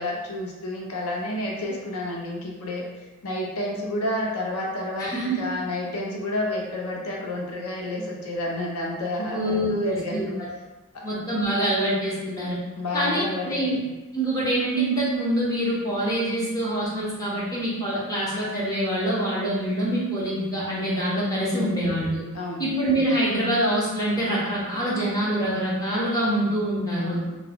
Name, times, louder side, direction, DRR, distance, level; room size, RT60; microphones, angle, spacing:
voice 1, 0.0-2.8 3.2-10.4 10.9-11.0 12.8-13.9 21.4-21.8 22.3-22.7 27.0-27.3, left 1 dB, 80° left, -2 dB, 0.6 m, -30 dB
voice 2, 5.0-5.4 9.3-10.2 11.0-12.6 12.9-13.8 14.1-22.2 22.6-27.2, right 1 dB, 15° left, -7 dB, 1.0 m, -25 dB
3.9 x 2.3 x 3.4 m, 1.1 s
head